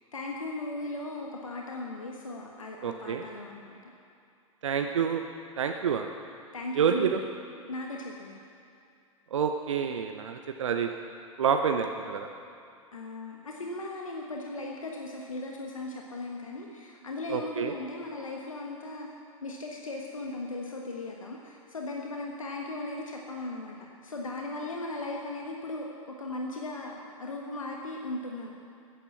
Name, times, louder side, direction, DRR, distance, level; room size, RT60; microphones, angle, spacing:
voice 1, 0.1-3.9 4.8-4.9 6.5-7.2 7.7-8.4 12.9-19.1 19.4-23.7 24.0-28.5, left 2 dB, 75° left, 0 dB, 1.5 m, -37 dB
voice 2, 2.8-3.2 4.6-5.2 5.6-6.1 6.8-7.2 9.3-10.9 11.4-12.3 17.3-17.7, right 7 dB, 65° right, 5 dB, 0.9 m, -28 dB
14.5 x 10.0 x 7.3 m, 2.5 s
figure-of-eight pair, 95°, 17 cm